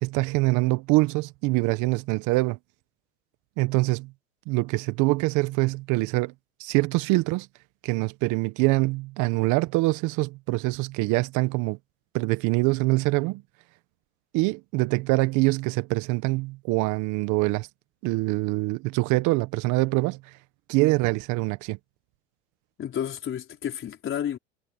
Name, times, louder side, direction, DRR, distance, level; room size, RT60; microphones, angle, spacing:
voice 1, 0.0-2.6 3.6-4.1 4.5-6.3 6.6-7.5 7.8-11.8 12.1-13.4 14.3-17.7 18.0-20.2 20.7-21.8, right 23 dB, 55° right, 1.5 m, -24 dB
voice 2, 22.8-24.4, left 9 dB, 35° left, 4.9 m, -31 dB
hypercardioid pair, 100°, 35 cm